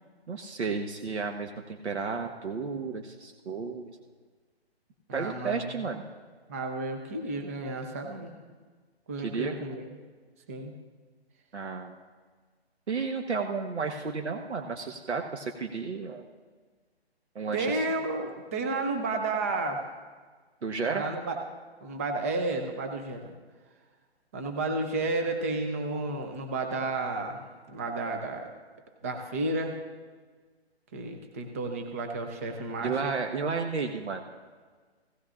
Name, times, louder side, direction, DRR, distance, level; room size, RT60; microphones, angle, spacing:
voice 1, 0.3-4.0 5.1-6.1 9.2-9.5 11.5-11.9 12.9-16.2 17.3-17.8 20.6-21.1 32.8-34.2, right 4 dB, 90° right, 3 dB, 1.2 m, -32 dB
voice 2, 5.1-5.8 6.5-8.3 9.1-10.0 10.5-10.7 17.5-19.8 20.9-21.4 21.8-23.3 24.3-28.5 29.0-29.7 30.9-33.1, right 2 dB, 15° right, 4 dB, 0.5 m, -32 dB
16.5 x 16.5 x 2.5 m, 1.5 s
hypercardioid pair, 155°, 33 cm